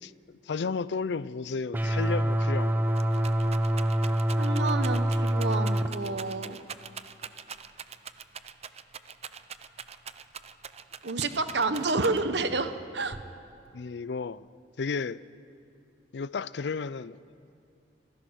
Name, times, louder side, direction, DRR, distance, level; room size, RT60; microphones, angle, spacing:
voice 1, 0.0-2.9 13.7-14.5 14.8-15.2 16.1-17.2, left 5 dB, 75° left, 0.5 m, -33 dB
sound 1, 1.7-5.9, right 1 dB, 10° right, 0.9 m, -26 dB
Rattle, 2.5-12.5 13.1-13.7, right 7 dB, 35° right, 0.6 m, -43 dB
voice 2, 4.4-6.6 11.0-13.2, right 3 dB, 75° right, 1.1 m, -29 dB
26.0 x 15.5 x 6.4 m
head